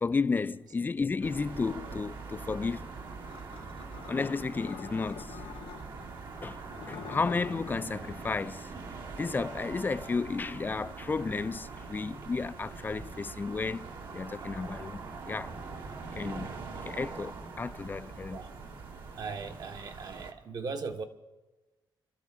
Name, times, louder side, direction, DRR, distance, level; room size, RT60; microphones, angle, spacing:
voice 1, 0.0-2.9 4.1-5.4 6.4-6.6 6.9-8.7 9.2-13.9 14.1-15.5 16.1-16.5 16.8-17.3 17.6-18.4, left 4 dB, 20° left, 0.4 m, -32 dB
sound 1, 1.2-20.3, right 4 dB, 65° right, 2.0 m, -43 dB
sound 2, 3.3-6.1 6.6-7.9, left 9 dB, 80° left, 0.8 m, -46 dB
voice 2, 19.2-21.0, right 4 dB, 50° right, 1.3 m, -38 dB
26.0 x 13.0 x 3.7 m
cardioid pair, 115°, 9 cm